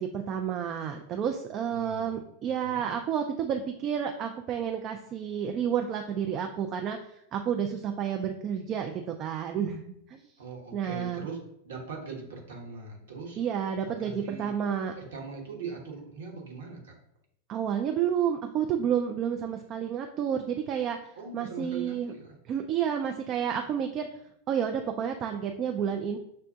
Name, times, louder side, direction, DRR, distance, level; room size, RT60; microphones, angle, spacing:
voice 1, 0.0-9.8 10.1-10.2 10.7-11.3 13.4-14.9 17.5-21.0 21.3-22.1 22.5-24.1 24.5-26.2, right 8 dB, 35° right, 4 dB, 0.3 m, -30 dB
voice 2, 1.7-2.9 10.4-13.4 13.9-14.5 15.0-17.0 21.1-22.4, right 4 dB, 60° right, 0 dB, 1.0 m, -41 dB
6.4 x 2.1 x 2.6 m, 0.76 s
figure-of-eight pair, 90°, 0 cm